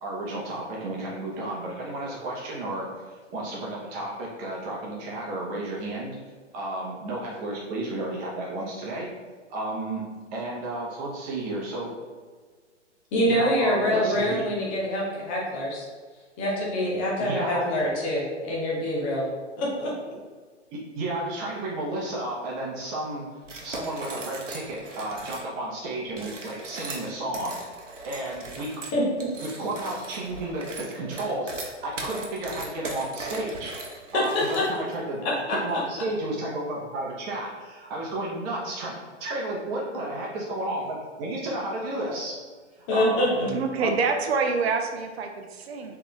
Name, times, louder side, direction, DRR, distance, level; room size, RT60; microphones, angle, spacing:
voice 1, 0.0-6.2 6.5-9.1 9.5-10.1 10.3-11.9 13.3-14.4 17.2-17.8 20.7-23.2 23.6-27.6 28.0-28.8 29.4-33.7 34.1-35.2 35.6-42.4 42.8-43.9, right 2 dB, 25° right, -3 dB, 0.8 m, -32 dB
voice 2, 13.1-15.9 16.4-19.2 19.6-19.9 28.9-29.0 34.1-34.2 34.6-34.7 35.2-35.6 42.9-43.5, left 1 dB, 10° left, -4 dB, 0.3 m, -25 dB
sound 1, 23.4-25.5 26.1-34.9, right 2 dB, 85° right, 0.8 m, -39 dB
voice 3, 43.5-46.0, right 4 dB, 60° right, 4 dB, 0.6 m, -26 dB
3.9 x 3.3 x 3.1 m, 1.5 s
figure-of-eight pair, 120°, 36 cm